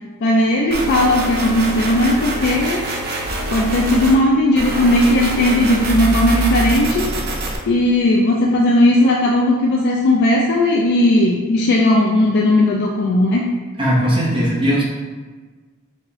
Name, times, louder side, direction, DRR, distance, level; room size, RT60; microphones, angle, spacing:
voice 1, 0.2-2.8 3.5-7.1 7.7-13.5, left 1 dB, 55° left, -1 dB, 0.3 m, -16 dB
sound 1, 0.7-4.2 4.5-7.6, right 2 dB, 45° right, 0.5 m, -24 dB
voice 2, 13.8-14.8, equal, 25° right, -6 dB, 0.9 m, -18 dB
3.4 x 3.2 x 2.9 m, 1.4 s
head